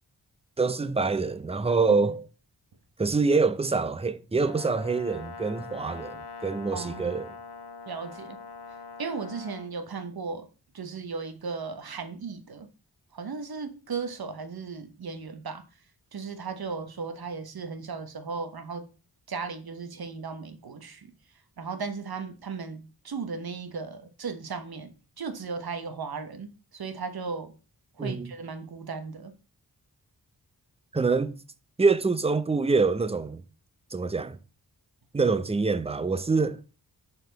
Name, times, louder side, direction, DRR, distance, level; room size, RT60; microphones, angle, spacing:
voice 1, 0.6-2.2 3.0-7.3 28.0-28.3 30.9-31.3 31.8-33.4 33.9-34.4 35.1-36.6, right 4 dB, 15° right, 0.6 m, -25 dB
Brass instrument, 4.4-9.7, left 4 dB, 85° left, 1.2 m, -43 dB
voice 2, 6.7-7.1 7.9-8.4 9.0-10.5 10.7-12.7 13.1-15.6 16.1-18.9 19.3-21.1 21.6-24.9 25.2-27.5 28.0-29.3, right 5 dB, 65° right, 1.1 m, -36 dB
11.0 x 4.4 x 4.0 m
wide cardioid pair, 100°, 39 cm